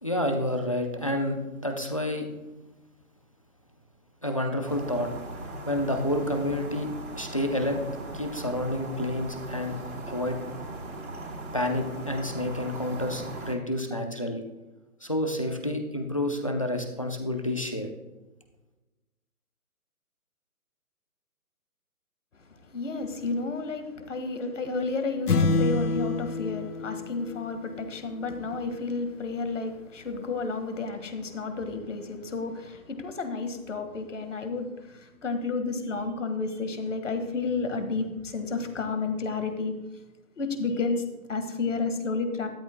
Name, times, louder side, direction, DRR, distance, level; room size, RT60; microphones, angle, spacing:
voice 1, 0.0-2.3 4.2-5.1 5.7-7.8 8.1-9.8 10.1-10.4 11.5-14.4 15.0-17.9, left 1 dB, 25° left, 4 dB, 0.6 m, -29 dB
sound 1, 4.7-13.6, right 2 dB, 70° right, 2.8 m, -39 dB
voice 2, 22.4-39.7 40.4-42.5, left 4 dB, 55° left, 7 dB, 1.8 m, -31 dB
sound 2, 25.3-27.9, left 3 dB, 90° left, 1.1 m, -27 dB
13.0 x 12.0 x 2.2 m, 1.1 s
hypercardioid pair, 175°, 45 cm